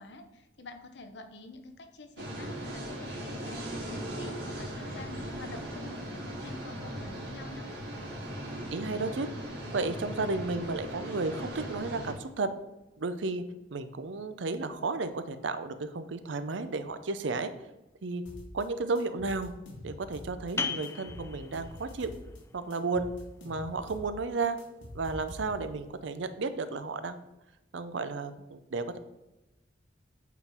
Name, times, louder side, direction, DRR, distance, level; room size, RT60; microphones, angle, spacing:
voice 1, 0.0-7.7, left 2 dB, 65° left, 6 dB, 0.8 m, -48 dB
sound 1, 2.2-12.1, right 1 dB, 65° right, 2.1 m, -38 dB
voice 2, 8.5-9.3 9.7-12.5 13.0-13.4 13.7-17.5 18.0-18.2 18.5-19.5 19.8-22.1 22.5-23.1 23.4-24.6 24.9-27.2 27.7-29.0, right 3 dB, 80° right, 11 dB, 0.6 m, -33 dB
sound 2, 18.3-18.7 19.0-20.5 20.8-22.4 22.7-25.8, left 1 dB, 85° left, 1.6 m, -46 dB
sound 3, 20.6-25.9, left 5 dB, 15° left, 0.3 m, -41 dB
8.2 x 3.8 x 4.4 m, 0.97 s
head